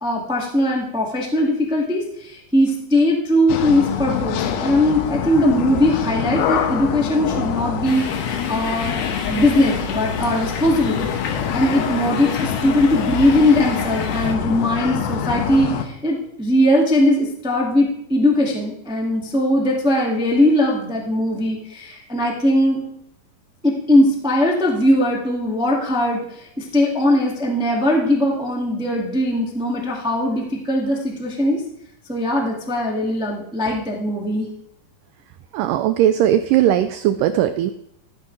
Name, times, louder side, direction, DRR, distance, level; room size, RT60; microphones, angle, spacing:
voice 1, 0.0-8.9 9.3-22.8 23.6-31.6 32.1-34.5, left 1 dB, 5° right, -2 dB, 0.9 m, -20 dB
sound 1, 3.5-15.8, left 8 dB, 90° left, 2.8 m, -25 dB
sound 2, 7.8-14.3, left 5 dB, 60° left, 2.4 m, -33 dB
voice 2, 35.5-37.7, right 11 dB, 90° right, 10 dB, 1.9 m, -18 dB
14.5 x 9.6 x 3.3 m, 0.75 s
omnidirectional pair, 4.4 m